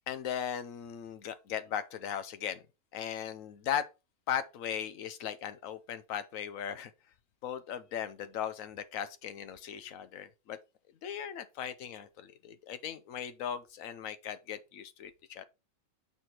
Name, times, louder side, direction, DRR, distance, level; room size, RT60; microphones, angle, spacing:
voice 1, 0.1-2.6 2.9-3.9 4.3-6.9 7.4-10.6 11.0-15.4, left 9 dB, 85° left, 1.1 m, -38 dB
5.8 x 4.7 x 4.3 m
omnidirectional pair, 1.4 m